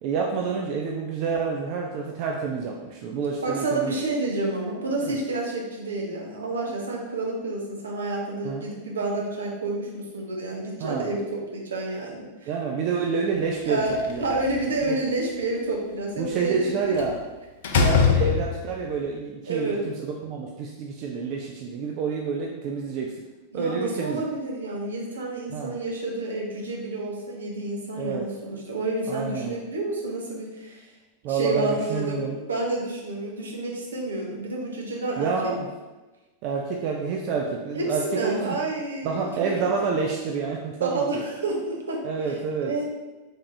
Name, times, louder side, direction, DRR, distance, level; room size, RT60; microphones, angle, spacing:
voice 1, 0.0-3.9 5.0-5.2 8.4-8.6 10.8-11.1 12.5-14.4 14.9-15.0 16.2-17.2 17.7-23.1 23.5-24.2 25.5-25.8 28.0-28.3 29.1-29.6 31.2-32.4 35.2-35.7 36.4-38.6 39.0-41.2 42.0-42.7, right 5 dB, 45° right, 0 dB, 0.4 m, -28 dB
voice 2, 3.4-12.5 13.7-13.9 14.2-16.9 19.5-19.8 23.5-30.8 31.3-32.2 32.5-35.3 37.7-39.3 39.6-39.7 40.8-42.0 42.6-42.9, right 2 dB, 70° right, -1 dB, 0.7 m, -29 dB
Slam, 13.8-14.8 17.0-17.2 17.6-18.9, left 6 dB, 55° left, 0.4 m, -22 dB
3.4 x 3.3 x 2.6 m, 1.2 s
figure-of-eight pair, 90°, 0 cm